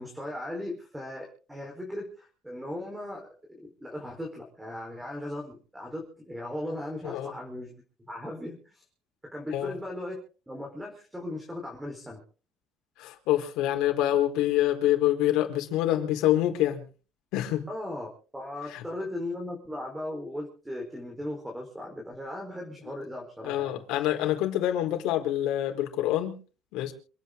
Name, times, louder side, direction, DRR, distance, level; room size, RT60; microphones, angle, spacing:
voice 1, 0.0-8.8 9.2-12.2 17.7-23.8, left 1 dB, 5° right, 4.6 m, -38 dB
voice 2, 13.0-16.8 17.3-17.7 18.7-18.8 23.4-26.4 26.7-26.9, left 13 dB, 80° left, 4.2 m, -26 dB
27.5 x 9.4 x 3.9 m
cardioid pair, 160°, 0 cm